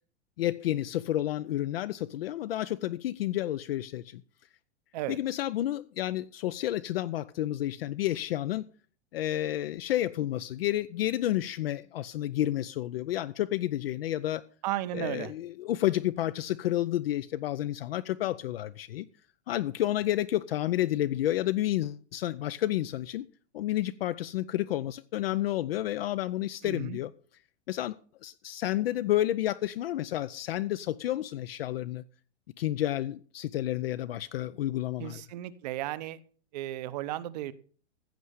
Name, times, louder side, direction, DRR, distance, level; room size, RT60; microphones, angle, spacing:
voice 1, 0.4-4.2 5.1-8.7 9.1-14.4 14.9-19.1 19.5-23.3 23.5-27.1 27.7-27.9 28.2-32.0 32.6-35.2, left 13 dB, 55° left, 0.6 m, -30 dB
voice 2, 14.6-15.3 26.6-27.0 35.0-36.2 36.5-37.5, right 14 dB, 35° right, 0.7 m, -34 dB
15.5 x 5.5 x 6.4 m
hypercardioid pair, 160°, 35 cm